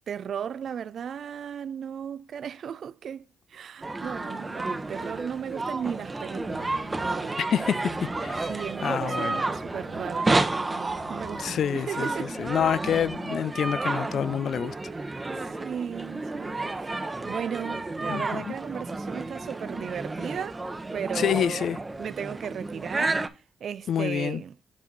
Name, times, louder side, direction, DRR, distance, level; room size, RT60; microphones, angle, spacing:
voice 1, 0.1-7.4 8.4-10.3 10.6-12.4 14.6-15.1 15.4-16.7 17.2-20.6 20.9-24.6, right 8 dB, 65° right, 0.3 m, -36 dB
sound 1, 3.8-23.3, right 2 dB, 25° right, 0.8 m, -31 dB
sound 2, 6.3-13.3, left 1 dB, 55° left, 2.7 m, -48 dB
voice 2, 7.4-8.5 8.8-9.4 11.4-14.7 18.1-18.5 21.2-21.8 23.9-24.4, left 9 dB, 70° left, 0.4 m, -27 dB
7.3 x 4.6 x 3.9 m
supercardioid pair, 60°, 0 cm